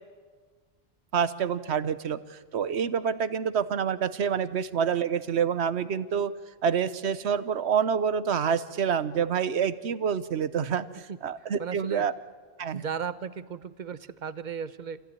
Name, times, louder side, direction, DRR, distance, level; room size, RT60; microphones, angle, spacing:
voice 1, 1.1-6.3 6.6-12.1 12.6-12.8, right 7 dB, 80° right, 14 dB, 1.2 m, -27 dB
voice 2, 11.6-12.0 12.7-15.0, right 6 dB, 45° right, 14 dB, 0.9 m, -35 dB
28.0 x 15.5 x 9.6 m, 1.4 s
omnidirectional pair, 1.1 m